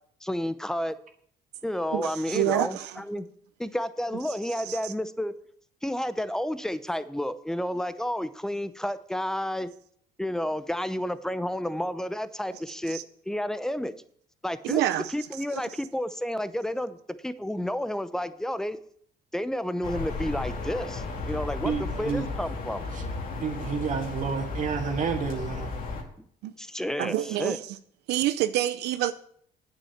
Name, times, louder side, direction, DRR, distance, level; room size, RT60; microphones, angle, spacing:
voice 1, 0.2-0.9 1.6-3.3 3.6-5.3 5.8-9.7 10.2-13.0 13.3-13.9 14.4-14.8 15.1-17.0 17.2-18.8 19.3-21.7 22.0-22.8 26.6-27.6, left 1 dB, 5° left, 0.7 m, -31 dB
voice 2, 1.9-3.0 4.3-4.9 12.5-12.6 12.9-13.0 14.6-15.1 15.5-15.6 26.4-26.5 27.0-27.8 28.1-29.1, right 13 dB, 85° right, 0.6 m, -28 dB
sound 1, 19.8-26.0, left 3 dB, 55° left, 2.4 m, -34 dB
voice 3, 21.6-22.3 22.9-23.0 23.4-25.7, right 6 dB, 50° right, 2.1 m, -30 dB
8.9 x 7.2 x 7.3 m
cardioid pair, 110°, 17 cm